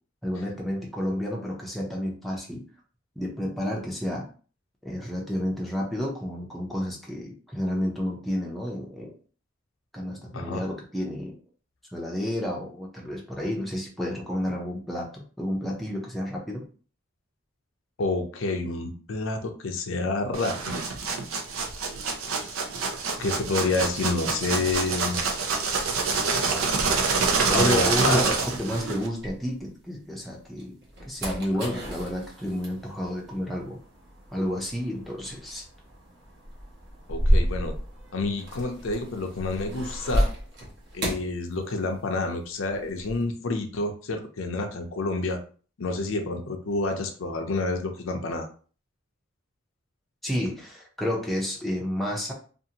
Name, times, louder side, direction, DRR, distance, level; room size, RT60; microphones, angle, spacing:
voice 1, 0.2-2.6 3.2-4.3 4.8-9.1 9.9-11.3 11.9-16.6 27.5-30.8 31.1-33.8 34.3-35.6 50.2-52.3, equal, ahead, -3 dB, 0.5 m, -30 dB
voice 2, 18.0-20.9 22.4-22.5 23.2-25.2 27.5-28.2 31.5-31.7 37.1-37.7 38.1-40.3 40.9-45.4 45.8-48.5, left 3 dB, 75° left, 4 dB, 0.5 m, -29 dB
sound 1, 20.3-29.1, right 4 dB, 80° right, 0.5 m, -26 dB
sound 2, 27.2-30.0 30.4-42.2 42.4-43.2, equal, 50° right, 0.9 m, -31 dB
2.6 x 2.4 x 2.8 m, 0.40 s
head